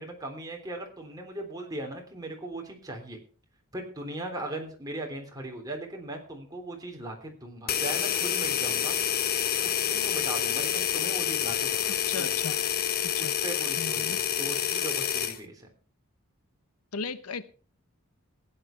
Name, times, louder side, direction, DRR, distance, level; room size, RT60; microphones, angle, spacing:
voice 1, 0.0-3.2 3.7-9.0 9.6-12.3 13.2-15.7, right 1 dB, 15° right, 1 dB, 3.5 m, -38 dB
sound 1, 7.7-15.4, left 9 dB, 45° left, 0.9 m, -28 dB
voice 2, 11.9-12.6 13.0-13.4 13.8-14.2 16.9-17.4, left 5 dB, 90° left, 14 dB, 0.9 m, -36 dB
16.0 x 10.0 x 4.6 m, 0.40 s
head